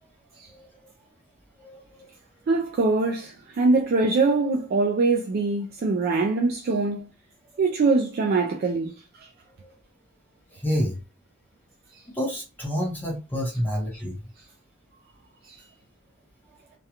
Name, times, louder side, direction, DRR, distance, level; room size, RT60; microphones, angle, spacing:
voice 1, 1.6-2.1 10.6-11.0 12.1-14.2, equal, 10° left, 0.7 m, -28 dB
voice 2, 2.5-7.1 7.6-8.9 9.2-9.3 11.9-12.0 15.4-15.6, right 3 dB, 45° right, 0.3 m, -23 dB
2.4 x 2.2 x 2.8 m
head